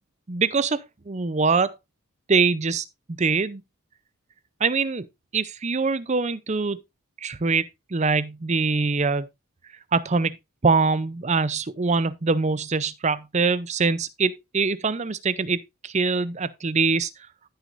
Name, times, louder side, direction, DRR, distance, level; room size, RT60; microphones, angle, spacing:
voice 1, 0.3-1.8 2.3-2.8 3.2-3.6 4.6-5.1 5.3-6.8 7.2-9.3 9.9-10.4 10.6-17.1, right 4 dB, 30° right, 0.6 m, -23 dB
14.5 x 6.2 x 2.6 m
head